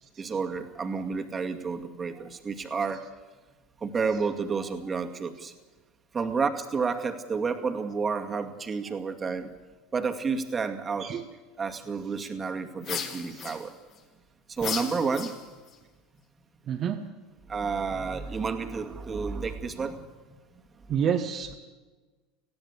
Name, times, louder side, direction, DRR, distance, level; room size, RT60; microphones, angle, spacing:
voice 1, 0.2-3.1 3.8-5.5 6.1-9.5 9.9-11.1 11.6-13.7 14.5-15.3 17.5-20.1, right 5 dB, 25° right, 5 dB, 2.2 m, -30 dB
sound 1, 12.8-14.0 14.6-15.7, left 7 dB, 45° left, 3.0 m, -35 dB
voice 2, 16.7-17.0 20.9-21.5, right 8 dB, 40° right, 2 dB, 1.6 m, -28 dB
19.5 x 15.5 x 8.6 m, 1.2 s
hypercardioid pair, 80°, 0 cm